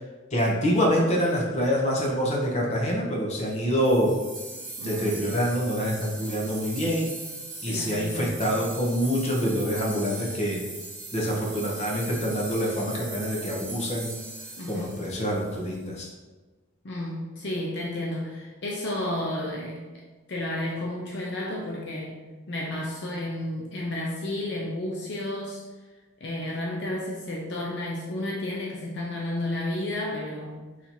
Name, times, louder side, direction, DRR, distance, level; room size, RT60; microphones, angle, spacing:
voice 1, 0.3-4.1 4.8-7.1 7.6-10.6 11.1-14.1 14.7-16.1, equal, 35° left, -2 dB, 0.9 m, -26 dB
sound 1, 3.8-15.9, right 2 dB, 25° right, 1.3 m, -39 dB
voice 2, 4.8-5.2 7.7-8.5 14.6-15.0 16.8-19.8 20.3-22.2 22.5-25.6 26.2-30.6, left 1 dB, 60° left, -3 dB, 0.6 m, -32 dB
4.1 x 2.8 x 4.4 m, 1.3 s
head